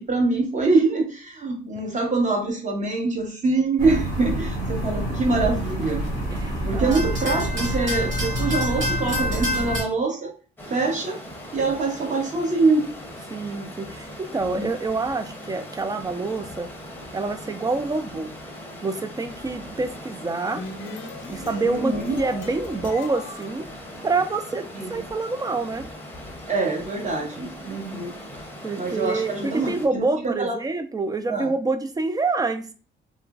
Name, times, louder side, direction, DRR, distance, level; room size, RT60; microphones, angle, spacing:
voice 1, 0.0-6.0 6.6-10.3 10.7-11.2 11.5-12.9 14.5-14.6 21.6-22.1 24.7-25.0 26.5-28.1 28.8-30.6 31.3-31.5, right 3 dB, 40° right, 1 dB, 1.0 m, -24 dB
sound 1, 3.8-9.8, equal, 75° right, 1.1 m, -26 dB
voice 2, 6.3-7.1 13.3-16.7 17.1-18.3 18.8-20.6 21.3-23.7 24.0-25.9 28.6-32.7, right 3 dB, 20° right, 8 dB, 0.4 m, -27 dB
Stream, 10.6-29.9, left 1 dB, 10° left, 0.7 m, -40 dB
sound 2, 20.2-24.6, left 3 dB, 75° left, 0.6 m, -39 dB
3.0 x 2.4 x 2.4 m, 0.37 s
cardioid pair, 90°, 20 cm